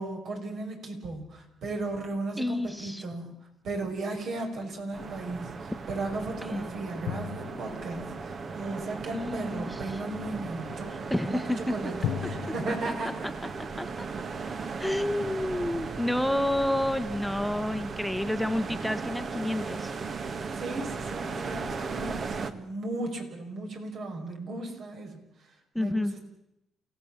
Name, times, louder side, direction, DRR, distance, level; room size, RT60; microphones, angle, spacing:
voice 1, 0.0-3.3 3.6-10.9 11.3-11.4 11.7-13.3 20.5-26.2, right 2 dB, 65° right, 3 dB, 5.9 m, -36 dB
voice 2, 2.4-3.0 6.5-6.7 9.1-10.0 11.1-11.9 13.2-13.3 13.8-14.1 14.8-19.9 25.7-26.1, left 1 dB, ahead, 9 dB, 1.2 m, -29 dB
sound 1, 4.9-22.5, right 4 dB, 45° right, 1.7 m, -37 dB
sound 2, 7.1-8.7 12.0-12.6, left 9 dB, 85° left, 1.2 m, -35 dB
29.0 x 16.5 x 7.3 m, 0.86 s
cardioid pair, 90°, 0 cm